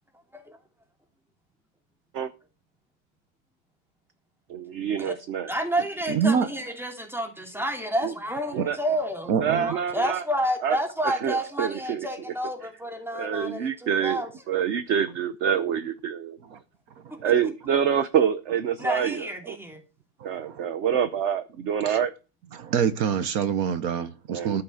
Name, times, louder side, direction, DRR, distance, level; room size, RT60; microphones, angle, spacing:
voice 1, 4.5-5.5 8.0-8.1 8.5-8.8 9.4-10.2 10.6-10.8 11.0-12.1 13.1-14.2 14.5-16.4 17.2-19.6 20.2-22.1 24.3-24.6, right 8 dB, 55° right, 1.0 m, -26 dB
voice 2, 5.5-9.3 9.6-14.3 18.8-19.8, equal, ahead, 2.7 m, -30 dB
voice 3, 6.1-6.5 8.6-8.7 9.3-9.7 16.5-16.6 17.0-17.3 20.2-20.7 21.8-22.0 22.5-24.6, right 7 dB, 70° right, 1.3 m, -26 dB
13.5 x 5.9 x 6.3 m
omnidirectional pair, 1.6 m